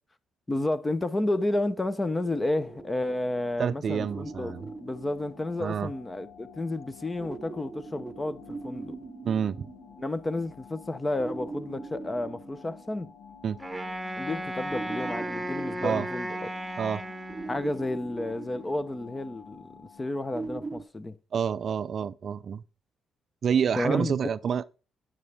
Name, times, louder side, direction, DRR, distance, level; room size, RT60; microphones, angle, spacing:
voice 1, 0.5-4.5 4.8-9.0 10.0-13.1 14.2-16.5 17.5-19.7 20.0-21.2 23.7-24.2, left 2 dB, 20° left, 0.8 m, -31 dB
sound 1, 1.9-20.8, left 7 dB, 85° left, 0.9 m, -51 dB
sound 2, 2.2-5.9 7.2-10.5 11.2-13.3 14.7-16.8 17.3-19.3 20.3-20.8, right 3 dB, 20° right, 0.8 m, -41 dB
voice 2, 3.6-4.6 5.6-5.9 9.2-9.7 13.4-13.6 15.8-16.1 16.8-17.0 21.3-22.6 23.4-24.7, right 7 dB, 55° right, 0.4 m, -28 dB
Wind instrument woodwind instrument, 13.6-18.0, right 1 dB, 5° right, 1.5 m, -35 dB
9.2 x 8.8 x 3.5 m
cardioid pair, 90°, 0 cm